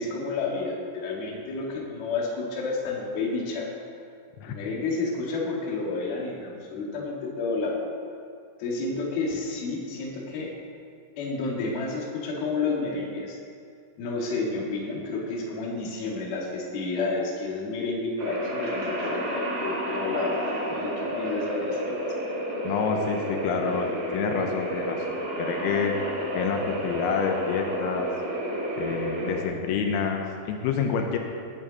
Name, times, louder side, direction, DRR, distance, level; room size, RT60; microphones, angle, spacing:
voice 1, 0.0-3.8 4.5-7.8 8.6-10.5 11.2-13.4 14.0-20.4 20.7-22.0, left 3 dB, 55° left, -2 dB, 3.5 m, -30 dB
sound 1, 18.2-29.4, equal, 50° right, 4.6 m, -31 dB
voice 2, 22.6-28.1 28.8-31.2, left 6 dB, 85° left, 3 dB, 3.6 m, -28 dB
19.0 x 10.5 x 4.2 m, 2.4 s
omnidirectional pair, 5.9 m